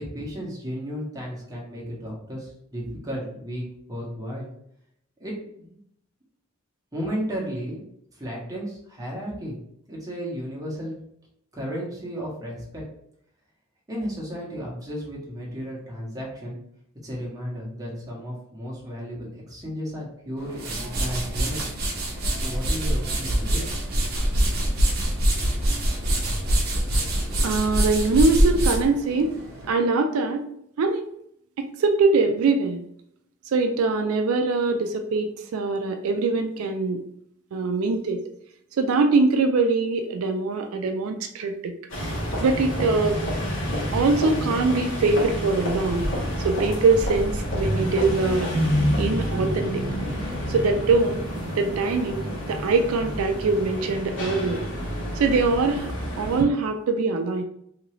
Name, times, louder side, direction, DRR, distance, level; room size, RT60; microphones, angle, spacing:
voice 1, 0.0-4.5 5.2-5.8 6.9-7.8 8.1-9.6 9.9-11.0 11.5-12.8 13.9-16.6 17.0-21.7 22.4-23.8, equal, 15° right, -4 dB, 0.9 m, -34 dB
sound 1, 20.4-29.7, right 1 dB, 50° right, 0.7 m, -24 dB
voice 2, 27.4-29.3 29.7-30.4 30.8-31.1 31.6-32.8 33.5-37.0 37.5-38.2 38.8-43.2 43.9-46.1 46.4-48.5 49.0-49.8 50.5-51.2 51.6-54.6 55.1-55.9 56.2-57.4, right 3 dB, 85° right, 6 dB, 0.4 m, -23 dB
sound 2, 41.9-56.4, equal, 65° left, 1.2 m, -28 dB
2.8 x 2.6 x 3.0 m, 0.72 s
head